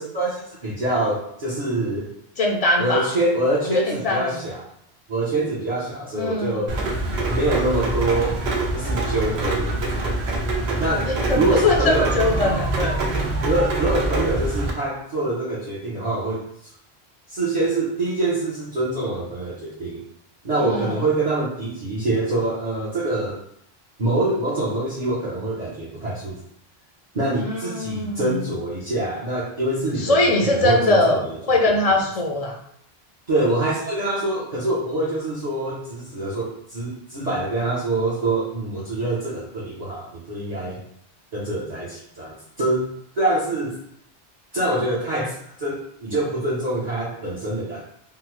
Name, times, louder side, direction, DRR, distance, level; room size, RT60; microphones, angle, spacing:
voice 1, 0.0-2.1 2.8-4.6 5.1-6.8 7.3-8.4 8.7-9.8 10.8-12.1 13.4-16.4 17.3-20.0 20.4-23.4 24.0-26.4 27.1-32.0 33.3-40.8 41.3-42.9 43.1-43.8 44.5-45.7 46.0-47.8, right 2 dB, 45° right, -7 dB, 0.8 m, -25 dB
voice 2, 2.4-3.1 3.7-4.4 6.1-6.6 11.1-13.0 20.6-21.0 27.4-28.4 30.0-31.2 31.5-32.6, left 2 dB, 50° left, 0 dB, 0.5 m, -21 dB
Rain, 6.7-14.7, right 2 dB, 85° right, 0.9 m, -25 dB
3.7 x 2.0 x 3.0 m, 0.71 s
omnidirectional pair, 1.0 m